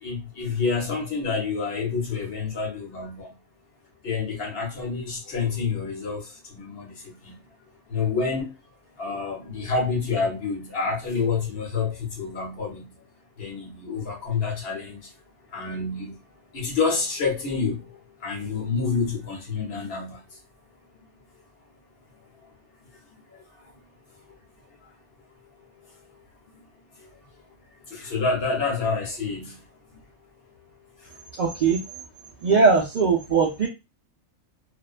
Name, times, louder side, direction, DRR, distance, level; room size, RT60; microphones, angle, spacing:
voice 1, 0.0-3.3 4.0-7.4 7.9-8.5 9.0-12.9 13.4-15.1 15.5-16.2 16.5-17.9 18.2-20.2 23.3-23.4 27.9-29.6, left 4 dB, 55° left, 1.0 m, -28 dB
voice 2, 31.4-31.8 32.4-33.7, right 4 dB, 85° right, 0.4 m, -20 dB
2.4 x 2.1 x 2.4 m
omnidirectional pair, 1.3 m